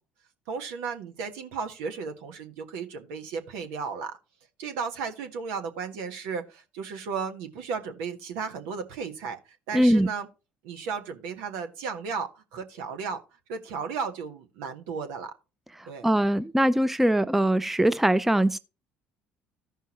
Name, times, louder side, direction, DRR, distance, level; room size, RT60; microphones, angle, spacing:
voice 1, 0.5-4.1 4.6-10.3 10.6-13.2 13.5-15.3 15.9-16.1, right 5 dB, 70° right, 1.2 m, -34 dB
voice 2, 9.7-10.1 16.0-18.6, right 1 dB, 5° right, 0.4 m, -22 dB
14.5 x 5.5 x 3.0 m
hypercardioid pair, 60°, 5 cm